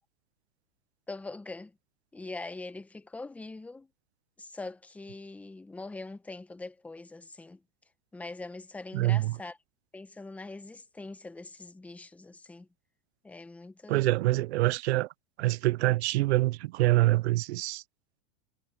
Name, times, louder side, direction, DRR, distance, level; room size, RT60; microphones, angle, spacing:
voice 1, 1.1-1.7 2.1-3.9 4.4-7.6 8.1-9.6 9.9-12.7 13.2-14.1, left 3 dB, 5° left, 0.9 m, -42 dB
voice 2, 8.9-9.4 13.9-15.1 15.4-17.8, right 18 dB, 90° right, 0.5 m, -25 dB
supercardioid pair, 165°, 32 cm